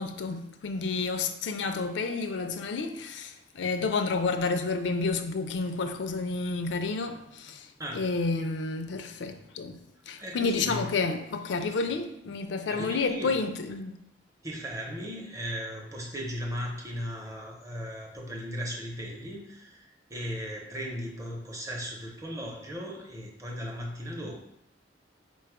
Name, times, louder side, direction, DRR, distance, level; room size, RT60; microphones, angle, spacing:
voice 1, 0.0-7.7 7.9-9.8 10.1-13.9, left 4 dB, 80° left, 0.4 m, -30 dB
voice 2, 7.8-8.1 10.2-10.9 12.7-13.3 14.4-24.4, equal, 20° right, 0.7 m, -37 dB
4.3 x 2.3 x 4.6 m
head